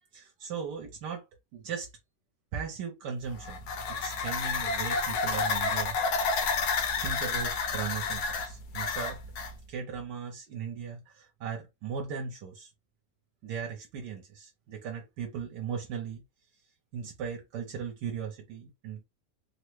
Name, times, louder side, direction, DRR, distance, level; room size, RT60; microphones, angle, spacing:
voice 1, 0.1-1.3 1.5-1.9 2.5-6.4 7.0-9.2 9.7-12.7 13.4-16.2 16.9-19.0, right 6 dB, 75° right, 1.2 m, -38 dB
sound 1, 3.3-9.5, left 5 dB, 70° left, 1.1 m, -30 dB
3.4 x 2.0 x 3.0 m
omnidirectional pair, 1.9 m